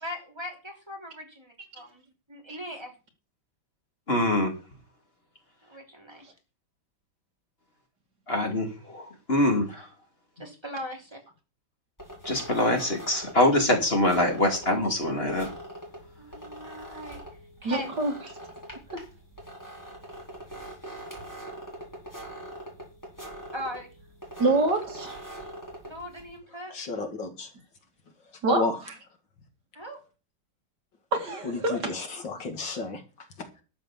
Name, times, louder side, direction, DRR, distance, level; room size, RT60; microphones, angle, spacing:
voice 1, 0.0-2.0 2.3-2.9 5.6-6.2 10.4-11.2 16.2-17.2 17.6-18.0 23.5-23.9 25.8-26.7 29.7-30.0, equal, 15° right, 1 dB, 3.1 m, -39 dB
voice 2, 4.1-4.5 8.3-9.9 12.2-15.5, left 1 dB, 30° left, 3 dB, 3.0 m, -24 dB
sound 1, 12.0-26.4, right 1 dB, 10° left, 4.6 m, -43 dB
voice 3, 17.6-18.1 18.9-19.0 24.4-25.2 28.4-28.6 31.1-31.8, right 2 dB, 60° right, 3 dB, 2.9 m, -25 dB
voice 4, 26.7-27.5 28.2-28.8 31.4-33.6, left 3 dB, 70° left, 5 dB, 2.7 m, -33 dB
12.0 x 6.7 x 7.3 m, 0.33 s
omnidirectional pair, 2.1 m